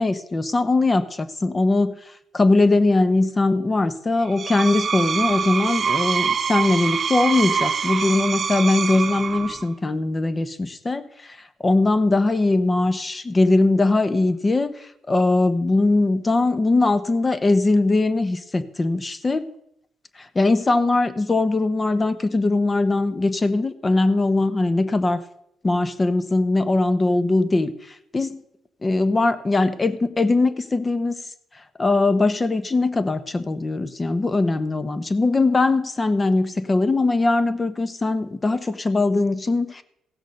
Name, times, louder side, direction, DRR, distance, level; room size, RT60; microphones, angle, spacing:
voice 1, 0.0-2.0 2.3-11.4 11.6-19.5 20.2-25.2 25.6-28.4 28.8-31.2 31.8-39.8, left 2 dB, 25° left, 12 dB, 1.0 m, -21 dB
Screech, 4.2-9.7, right 6 dB, 45° right, 0.7 m, -25 dB
16.0 x 6.4 x 6.4 m, 0.78 s
cardioid pair, 90°, 0 cm